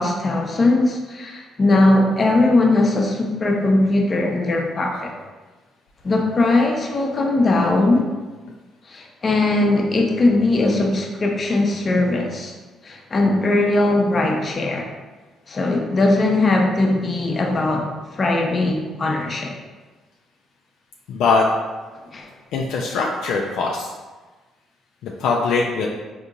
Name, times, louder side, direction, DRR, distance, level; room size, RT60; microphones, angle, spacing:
voice 1, 0.0-5.1 6.0-8.1 8.9-12.5 12.8-14.9 15.5-17.9 18.1-19.5 22.1-22.3, left 2 dB, 40° left, 1 dB, 0.6 m, -19 dB
voice 2, 21.1-21.4 22.5-23.9 25.0-25.9, left 4 dB, 75° left, -1 dB, 0.3 m, -21 dB
3.6 x 2.8 x 2.5 m, 1.3 s
supercardioid pair, 60°, 0 cm